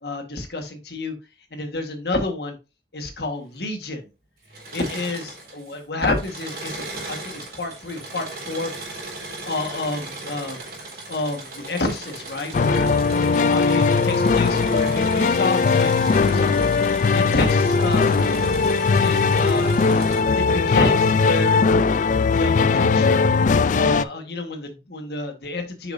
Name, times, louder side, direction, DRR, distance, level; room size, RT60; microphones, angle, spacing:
voice 1, 0.0-1.1 1.5-2.6 2.9-4.1 4.7-8.7 9.4-10.6 11.1-12.9 13.5-15.9 16.3-16.5 17.1-18.1 19.0-19.8 20.3-21.7 22.3-23.2 23.7-25.9, left 2 dB, 65° left, 5 dB, 1.5 m, -29 dB
Engine / Mechanisms, 4.4-5.8 6.1-20.2, right 2 dB, 65° right, 3.7 m, -37 dB
sound 1, 12.5-24.0, left 4 dB, 45° left, 0.3 m, -19 dB
6.5 x 5.8 x 2.6 m, 0.29 s
head